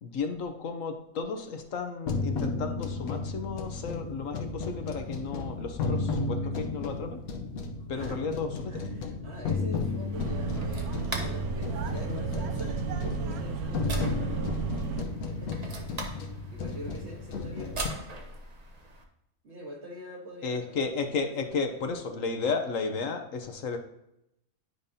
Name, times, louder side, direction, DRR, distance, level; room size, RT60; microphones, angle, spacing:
voice 1, 0.0-7.2 7.9-8.8 20.4-23.8, left 4 dB, 65° left, 6 dB, 1.2 m, -33 dB
sound 1, 2.1-17.9, left 3 dB, 90° left, 1.3 m, -34 dB
voice 2, 8.7-14.7 15.2-18.1 19.4-21.9, equal, 50° right, 0 dB, 1.7 m, -44 dB
sound 2, 9.7-19.0, right 2 dB, 30° right, 1.0 m, -42 dB
sound 3, 10.1-15.0, right 5 dB, 85° right, 1.2 m, -33 dB
9.8 x 5.2 x 2.7 m, 0.82 s
omnidirectional pair, 1.5 m